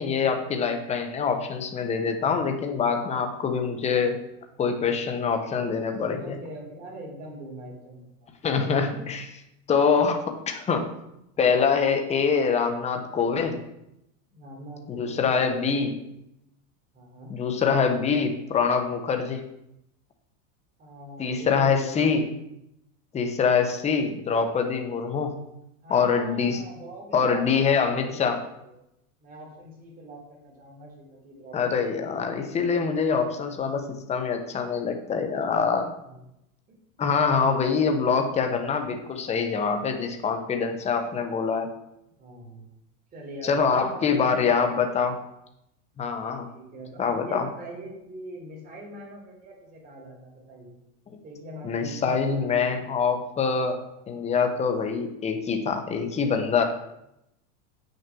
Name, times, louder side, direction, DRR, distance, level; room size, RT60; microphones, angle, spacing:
voice 1, 0.0-4.2 4.6-6.4 8.4-9.4 9.7-10.8 11.4-13.6 14.9-15.9 17.3-19.4 21.2-22.2 23.1-25.4 25.9-26.6 27.1-28.4 31.5-35.8 37.0-41.7 43.4-45.2 46.0-46.5 47.0-47.5 51.1-51.2 51.6-56.6, left 5 dB, 15° left, 5 dB, 1.1 m, -25 dB
voice 2, 6.1-8.0 14.3-15.9 16.9-17.3 20.8-22.1 25.8-28.7 29.2-32.1 35.3-36.2 36.7-36.8 42.2-42.6 43.1-44.9 46.5-50.8 51.2-53.1, right 1 dB, 20° right, -3 dB, 3.8 m, -42 dB
8.3 x 6.8 x 6.2 m, 0.82 s
supercardioid pair, 145°, 41 cm